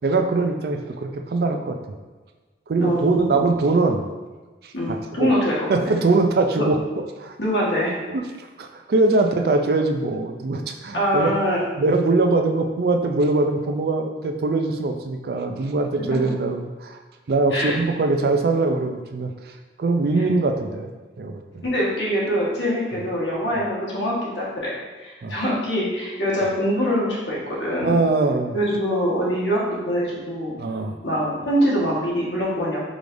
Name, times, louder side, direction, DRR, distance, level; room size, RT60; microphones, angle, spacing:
voice 1, 0.0-1.8 2.7-4.0 4.6-5.3 5.7-6.8 7.2-7.3 8.1-8.3 8.6-11.3 11.8-17.0 17.3-19.3 19.8-20.9 21.2-21.6 25.2-25.3 27.8-28.5 30.6-30.9, right 3 dB, 60° right, 4 dB, 0.4 m, -22 dB
voice 2, 2.8-3.4 4.7-5.9 6.5-6.6 7.4-7.9 10.9-11.6 17.5-17.8 21.6-24.7 25.0-27.9 28.5-30.5 31.0-32.8, equal, 90° left, -6 dB, 1.4 m, -24 dB
4.9 x 3.3 x 2.5 m, 1.3 s
head